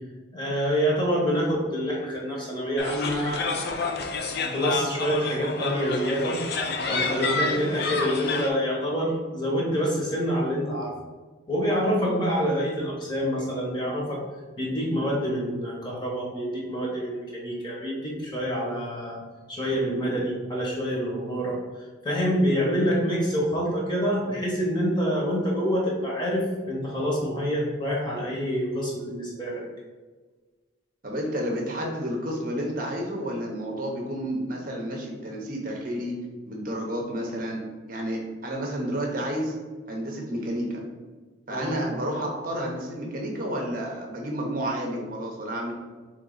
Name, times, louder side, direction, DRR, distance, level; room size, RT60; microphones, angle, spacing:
voice 1, 0.3-3.8 4.3-10.9 11.5-14.2 14.6-19.2 19.5-21.6 22.0-29.6 41.5-41.7, equal, 25° left, -3 dB, 1.1 m, -27 dB
sound 1, 2.8-8.5, left 4 dB, 55° left, 0.5 m, -29 dB
voice 2, 31.0-36.1 36.5-37.6 37.9-39.5 39.9-40.8 41.5-45.7, equal, 45° right, 0 dB, 0.7 m, -30 dB
3.9 x 3.3 x 3.9 m, 1.4 s
head